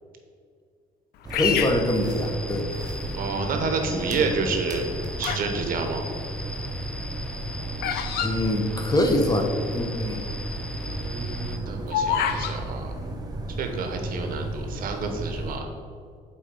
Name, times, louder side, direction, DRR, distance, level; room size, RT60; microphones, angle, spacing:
sound 1, 1.2-15.6, right 1 dB, 20° right, 0.9 m, -34 dB
Bird vocalization bird call bird song, 1.3-2.8 3.4-3.9 4.6-5.6 5.8-9.3 9.6-9.7 9.9-10.2 10.7-12.6, left 8 dB, 75° left, 0.6 m, -29 dB
voice 1, 1.3-2.7 8.2-10.2, left 1 dB, 20° left, 4 dB, 0.9 m, -24 dB
sound 2, 1.6-11.6, left 1 dB, 5° left, 0.5 m, -40 dB
voice 2, 3.1-4.8 5.2-6.0 11.0-12.9 13.6-15.7, right 4 dB, 60° right, 4 dB, 1.0 m, -29 dB
7.4 x 4.2 x 5.3 m, 2.2 s
cardioid pair, 110°, 17 cm